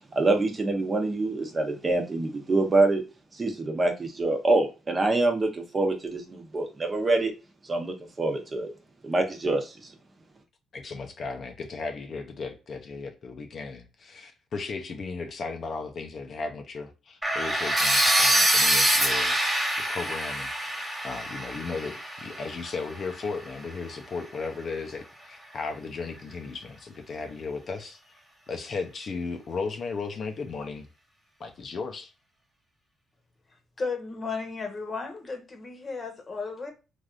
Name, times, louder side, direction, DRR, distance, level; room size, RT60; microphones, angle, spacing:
voice 1, 0.1-3.0 3.3-7.3 7.6-8.7 9.0-9.8, right 2 dB, 30° right, 0.8 m, -25 dB
voice 2, 10.7-19.4 19.8-28.0 28.5-30.9 31.4-32.1, left 4 dB, 50° left, 0.6 m, -36 dB
sound 1, 17.2-23.1, right 1 dB, 10° right, 1.4 m, -25 dB
voice 3, 33.8-36.7, left 4 dB, 35° left, 1.0 m, -34 dB
3.3 x 2.6 x 2.4 m
cardioid pair, 90°, 0 cm